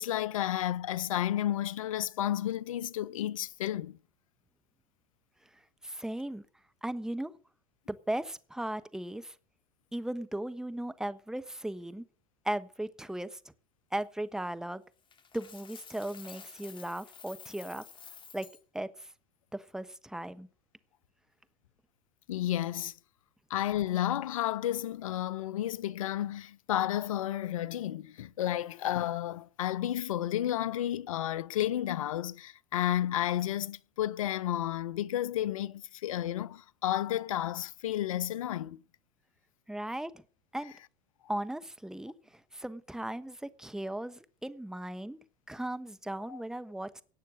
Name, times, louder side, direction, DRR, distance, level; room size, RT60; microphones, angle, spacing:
voice 1, 0.0-4.0 22.3-22.9 23.5-38.8 46.3-46.4, left 12 dB, 85° left, 0.7 m, -32 dB
voice 2, 5.8-6.4 6.8-7.3 7.9-9.3 9.9-12.0 12.4-13.4 13.9-14.8 15.3-17.8 18.3-18.5 18.7-19.1 19.5-20.5 39.7-40.2 40.5-40.7 41.3-45.2 45.5-47.0, right 1 dB, 5° right, 1.2 m, -37 dB
Coin (dropping), 15.1-18.6, left 6 dB, 30° left, 2.2 m, -50 dB
18.0 x 6.6 x 7.6 m
hypercardioid pair, 90°, 17 cm